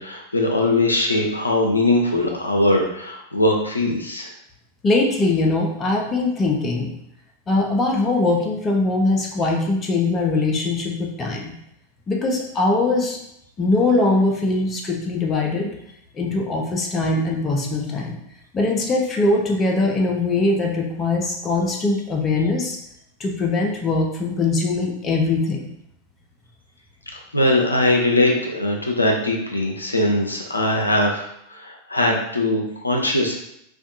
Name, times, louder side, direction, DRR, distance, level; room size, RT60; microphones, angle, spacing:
voice 1, 0.0-4.3 27.1-33.4, left 1 dB, 80° left, 0 dB, 0.4 m, -21 dB
voice 2, 4.8-6.9 7.5-11.5 12.1-13.2 13.6-15.7 16.1-18.1 18.5-22.8 23.2-25.7, left 2 dB, 20° left, 1 dB, 0.4 m, -21 dB
2.5 x 2.2 x 2.5 m, 0.76 s
figure-of-eight pair, 90°, 0 cm